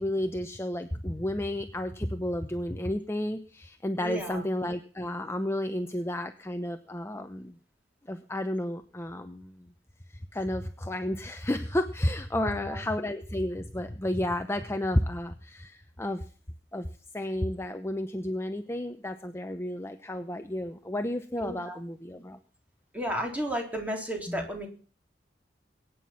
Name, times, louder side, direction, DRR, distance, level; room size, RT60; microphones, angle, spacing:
voice 1, 0.0-7.6 8.0-9.7 10.1-16.2 16.7-16.9 17.1-22.4 24.3-24.5, left 1 dB, 15° left, 7 dB, 0.8 m, -32 dB
voice 2, 4.0-4.4 12.4-12.8 21.4-21.8 22.9-24.7, right 1 dB, 10° right, 2 dB, 3.6 m, -33 dB
22.0 x 9.4 x 5.9 m, 0.40 s
head